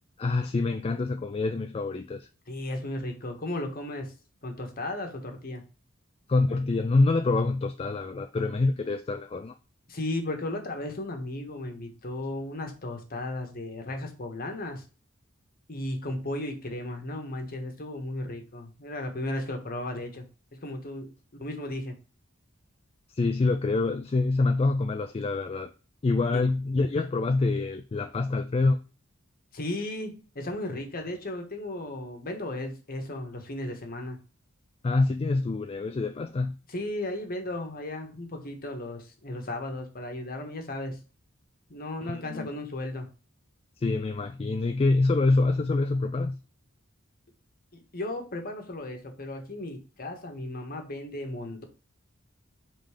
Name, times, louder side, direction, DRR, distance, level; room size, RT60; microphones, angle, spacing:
voice 1, 0.2-2.3 6.3-9.5 23.1-25.7 26.0-28.8 34.8-36.6 42.0-42.5 43.8-46.4, left 3 dB, 30° left, 0.3 m, -26 dB
voice 2, 2.5-4.1 4.4-5.6 9.9-14.8 15.7-20.2 20.5-22.0 26.3-26.4 29.5-34.2 36.7-41.0 41.7-43.1 47.7-51.6, left 1 dB, 45° left, 1.4 m, -35 dB
5.3 x 3.8 x 4.9 m
head